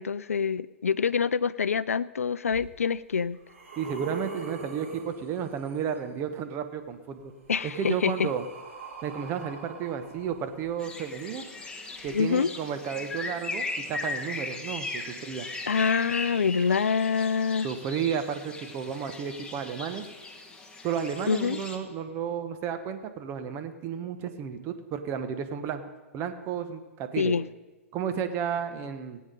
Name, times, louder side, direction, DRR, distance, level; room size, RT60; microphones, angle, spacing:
voice 1, 0.0-3.4 7.5-8.3 12.1-12.5 15.7-17.7 21.3-21.6 27.2-27.4, left 6 dB, 80° left, 17 dB, 0.4 m, -26 dB
sound 1, 2.5-2.6 3.2-5.9 7.1-11.0 12.0-12.1, right 4 dB, 65° right, 4.0 m, -43 dB
voice 2, 3.8-7.3 7.6-8.5 9.0-11.4 12.0-15.5 17.6-20.1 20.8-25.8 26.1-27.3 27.9-29.2, right 7 dB, 30° right, 8 dB, 1.2 m, -32 dB
sound 2, 10.8-21.8, left 3 dB, 10° left, 1.3 m, -38 dB
17.0 x 8.7 x 5.3 m, 1.2 s
figure-of-eight pair, 115°, 8 cm